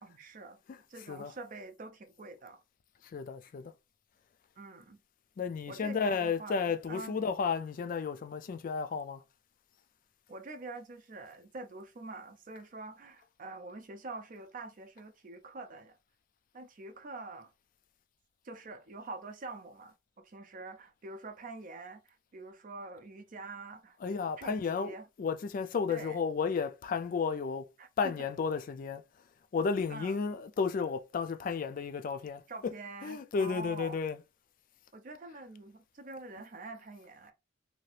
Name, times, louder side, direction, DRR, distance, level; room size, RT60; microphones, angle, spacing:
voice 1, 0.0-0.6 0.9-2.6 4.6-5.0 5.7-7.1 10.3-16.0 16.5-17.5 18.4-24.0 24.4-25.1 25.9-26.2 27.8-28.1 29.9-30.2 32.5-34.0 34.9-37.3, right 3 dB, 45° right, 0.5 m, -45 dB
voice 2, 3.0-3.7 5.4-9.2 24.0-27.7 28.0-29.0 29.5-32.4 33.0-34.2, left 5 dB, 45° left, 0.3 m, -33 dB
2.8 x 2.5 x 3.2 m
head